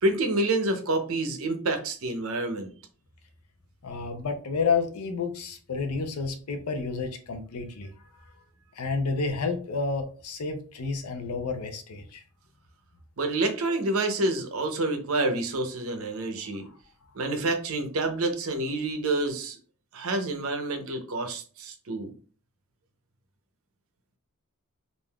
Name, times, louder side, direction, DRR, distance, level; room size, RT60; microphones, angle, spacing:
voice 1, 0.0-2.7 13.2-16.7 17.2-19.6 19.9-22.1, right 2 dB, 65° right, 6 dB, 0.6 m, -28 dB
voice 2, 3.8-7.9 8.8-12.2, left 4 dB, 85° left, 5 dB, 0.6 m, -30 dB
3.4 x 2.5 x 2.2 m, 0.40 s
head